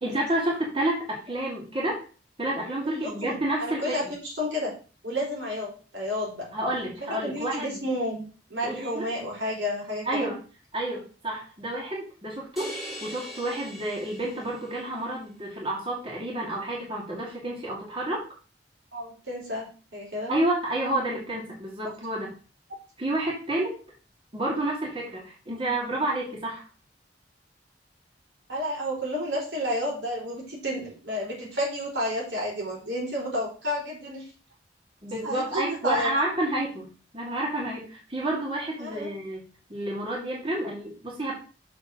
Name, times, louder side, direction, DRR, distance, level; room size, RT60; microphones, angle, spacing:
voice 1, 0.0-2.0 2.4-4.0 6.5-7.8 8.6-9.1 10.1-10.4 10.7-12.7 13.0-18.2 20.3-22.3 23.0-23.8 24.3-26.6 35.0-39.4 39.7-41.3, right 1 dB, 30° right, -3 dB, 2.4 m, -30 dB
voice 2, 2.9-4.7 5.0-6.5 7.1-8.2 8.5-10.3 18.9-20.3 28.5-34.3 35.2-36.1 38.8-39.1, equal, 80° right, -3 dB, 4.5 m, -31 dB
sound 1, 12.6-14.9, equal, ahead, 2.5 m, -40 dB
6.4 x 5.0 x 6.1 m, 0.37 s
head